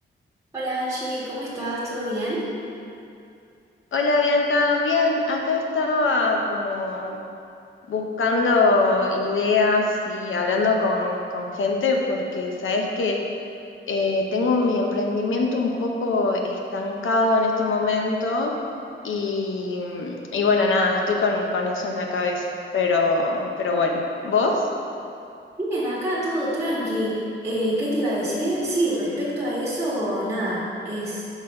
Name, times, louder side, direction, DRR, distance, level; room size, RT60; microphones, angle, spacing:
voice 1, 0.5-2.5 25.6-31.2, right 1 dB, 15° right, -8 dB, 1.4 m, -26 dB
voice 2, 3.9-7.2 7.9-13.2 13.9-18.5 19.0-22.4 22.7-24.7, left 3 dB, 75° left, 1 dB, 0.8 m, -23 dB
6.1 x 4.1 x 5.3 m, 2.6 s
wide cardioid pair, 150°, 21 cm